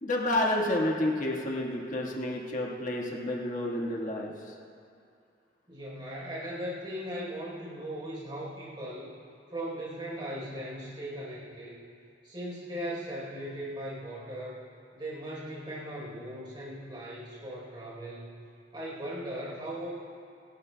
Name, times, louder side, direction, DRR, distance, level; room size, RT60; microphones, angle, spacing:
voice 1, 0.0-4.5, left 1 dB, 45° left, -2 dB, 1.5 m, -30 dB
voice 2, 5.7-9.1 9.5-11.8 12.2-14.6 14.9-18.4 18.7-19.9, equal, 25° right, -6 dB, 3.9 m, -38 dB
26.0 x 12.5 x 2.2 m, 2.4 s
head